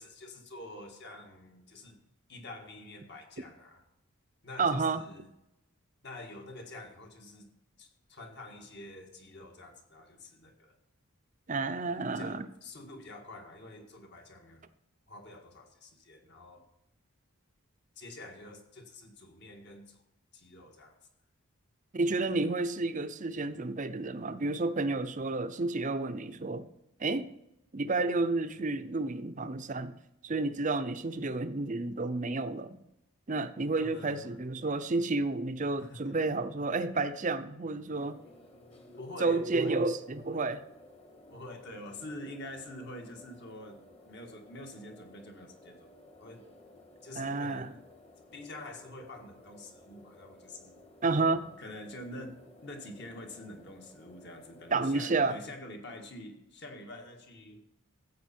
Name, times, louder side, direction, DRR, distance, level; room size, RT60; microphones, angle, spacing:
voice 1, 0.0-2.0 2.3-3.8 4.4-5.3 6.0-7.5 7.8-10.8 12.1-14.6 15.1-16.6 18.0-20.0 20.3-21.0 33.8-34.4 35.8-36.2 37.9-39.9 41.3-45.9 46.2-46.5 47.0-47.8 48.3-50.8 51.6-57.6, left 1 dB, 50° left, 3 dB, 1.8 m, -47 dB
voice 2, 4.6-5.0 11.5-12.4 21.9-26.7 27.0-27.3 27.7-29.9 30.2-32.7 33.3-38.2 39.2-40.6 47.2-47.7 51.0-51.5 54.7-55.4, right 3 dB, 35° right, 11 dB, 0.6 m, -30 dB
sound 1, 38.0-55.3, left 2 dB, 25° left, 1.4 m, -56 dB
14.0 x 8.5 x 4.4 m, 0.86 s
head